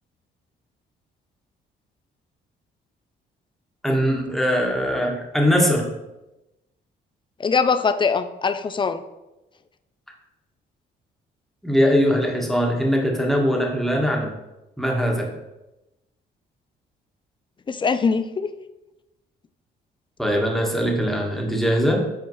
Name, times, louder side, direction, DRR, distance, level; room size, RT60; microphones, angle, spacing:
voice 1, 3.8-5.9 11.6-14.4 14.8-15.3 20.2-22.0, equal, ahead, -1 dB, 1.3 m, -21 dB
voice 2, 7.4-9.0 17.7-18.5, left 5 dB, 25° left, 11 dB, 0.4 m, -22 dB
7.7 x 4.3 x 3.1 m, 0.98 s
cardioid pair, 90°, 20 cm